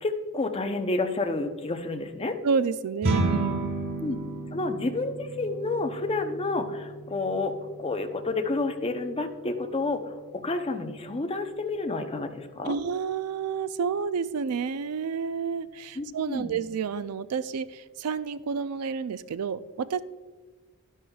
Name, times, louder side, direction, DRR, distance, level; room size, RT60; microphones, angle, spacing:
voice 1, 0.0-2.4 4.0-4.2 4.5-12.7 16.0-16.5, left 2 dB, 25° left, 6 dB, 0.7 m, -30 dB
voice 2, 2.4-3.7 12.7-20.0, right 6 dB, 85° right, 15 dB, 0.4 m, -30 dB
sound 1, 3.0-12.5, right 2 dB, 45° right, 1.3 m, -35 dB
11.5 x 11.0 x 2.3 m, 1.4 s
head